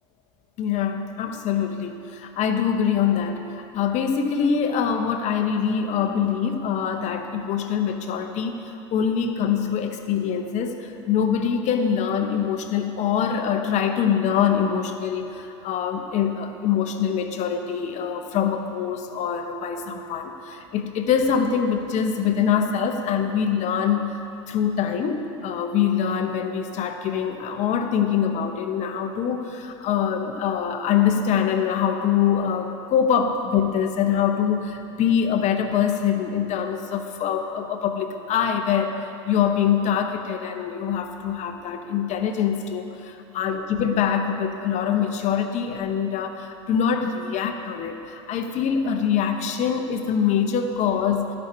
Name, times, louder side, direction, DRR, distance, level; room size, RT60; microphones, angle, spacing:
voice 1, 0.6-51.3, left 7 dB, 50° left, 6 dB, 0.8 m, -24 dB
12.0 x 5.3 x 4.6 m, 3.0 s
hypercardioid pair, 90°, 15 cm